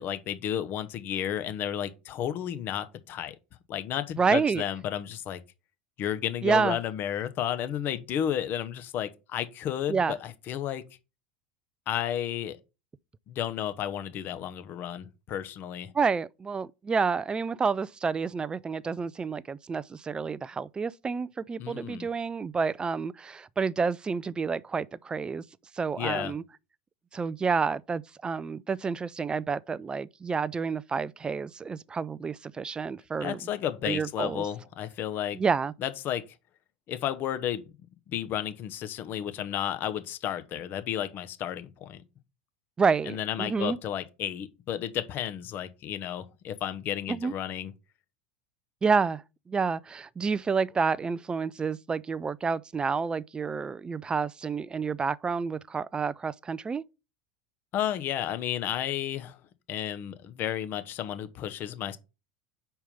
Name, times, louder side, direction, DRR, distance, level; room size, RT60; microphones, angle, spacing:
voice 1, 0.0-3.4 3.7-5.4 6.0-10.8 11.9-12.6 13.3-15.9 21.6-22.1 26.0-26.3 33.2-35.4 35.8-36.2 36.9-37.6 38.1-42.0 43.1-47.7 57.7-59.4 59.7-62.0, left 10 dB, 45° left, 0.9 m, -32 dB
voice 2, 4.2-4.6 6.4-6.8 9.9-10.1 15.9-25.4 25.7-26.4 27.1-33.4 33.8-34.5 35.3-35.7 42.8-43.8 47.1-47.3 48.8-56.8, right 5 dB, 20° right, 0.3 m, -29 dB
5.5 x 4.6 x 5.2 m
figure-of-eight pair, 80°, 5 cm